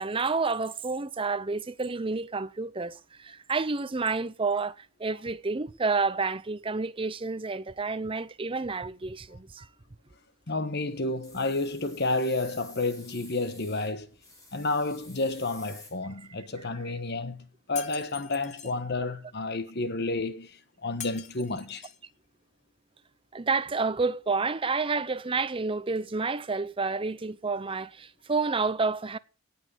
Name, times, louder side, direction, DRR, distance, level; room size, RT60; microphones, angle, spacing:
voice 1, 0.0-9.7 23.3-29.2, right 4 dB, 25° right, 0.6 m, -29 dB
voice 2, 10.5-14.1 14.5-21.8, left 2 dB, 50° left, 1.3 m, -30 dB
sound 1, 10.7-16.4, left 2 dB, 15° left, 4.0 m, -52 dB
Shatter, 17.8-18.7 21.0-22.1, left 9 dB, 30° left, 1.1 m, -42 dB
18.0 x 6.2 x 8.3 m
head